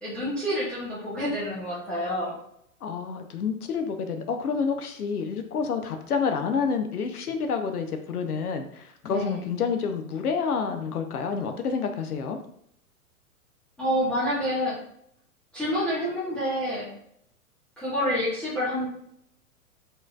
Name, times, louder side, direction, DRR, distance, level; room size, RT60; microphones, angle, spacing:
voice 1, 0.0-2.3 9.0-9.4 13.8-14.8 15.5-16.8 17.8-18.9, equal, 5° left, -11 dB, 0.3 m, -28 dB
voice 2, 2.8-12.4, left 5 dB, 80° left, 6 dB, 0.7 m, -28 dB
4.4 x 3.1 x 2.3 m, 0.71 s
hypercardioid pair, 115°, 44 cm